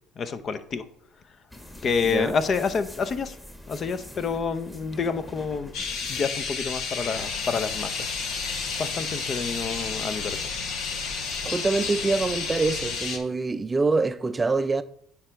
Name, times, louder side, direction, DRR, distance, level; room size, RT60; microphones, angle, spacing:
voice 1, 0.2-0.8 1.8-3.4 3.7-5.7 6.1-8.1 8.8-10.4, left 5 dB, 45° left, 0.7 m, -28 dB
sound 1, 1.5-11.7, left 1 dB, 10° left, 1.5 m, -46 dB
sound 2, 5.7-13.2, left 5 dB, 60° left, 1.2 m, -31 dB
sound 3, 7.0-13.0, left 3 dB, 85° left, 0.8 m, -41 dB
voice 2, 11.4-14.8, right 3 dB, 25° right, 0.4 m, -25 dB
9.6 x 4.7 x 3.4 m
hypercardioid pair, 65°, 0 cm